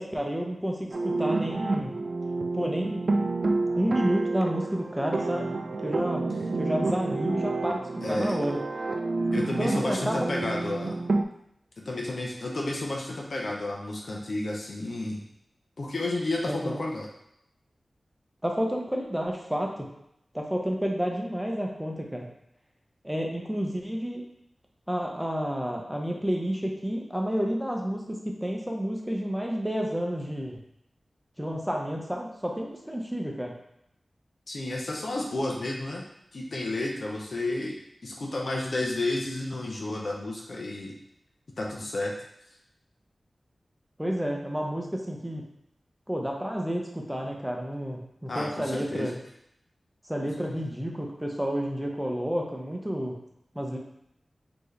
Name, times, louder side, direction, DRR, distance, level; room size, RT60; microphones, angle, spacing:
voice 1, 0.0-1.9 2.5-3.0 3.8-5.5 5.8-6.2 6.6-8.6 9.6-10.3 16.5-16.8 18.4-19.9 20.3-22.3 23.0-24.2 24.9-30.6 31.4-33.5 44.0-45.4 46.1-49.1 50.1-53.2 53.5-53.8, equal, 5° right, 0 dB, 0.7 m, -30 dB
sound 1, 0.9-11.2, right 3 dB, 65° right, 0.3 m, -29 dB
voice 2, 8.0-8.3 9.3-11.0 11.9-15.2 15.8-17.1 34.5-36.0 36.3-40.9 41.6-42.1 48.3-49.2, left 2 dB, 65° left, -2 dB, 0.7 m, -31 dB
4.3 x 2.9 x 3.2 m, 0.78 s
wide cardioid pair, 95°, 0 cm